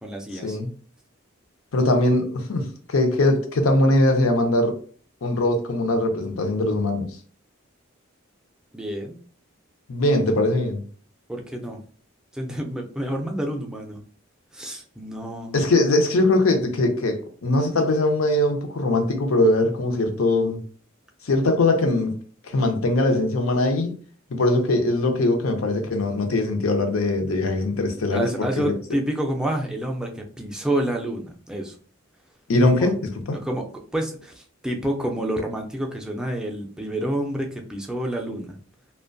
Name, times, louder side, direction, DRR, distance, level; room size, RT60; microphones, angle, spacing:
voice 1, 0.0-0.6 8.7-9.2 11.3-11.8 12.3-14.0 14.5-15.5 28.1-31.8 32.8-32.9 33.3-33.6 33.9-38.6, right 1 dB, 5° right, 0.3 m, -28 dB
voice 2, 1.7-4.8 5.2-7.1 9.9-10.9 15.5-20.6 21.2-22.1 22.4-23.9 24.3-28.3 28.6-28.7 32.5-32.9 33.3-33.4, left 2 dB, 85° left, 0.6 m, -21 dB
2.5 x 2.2 x 2.5 m
head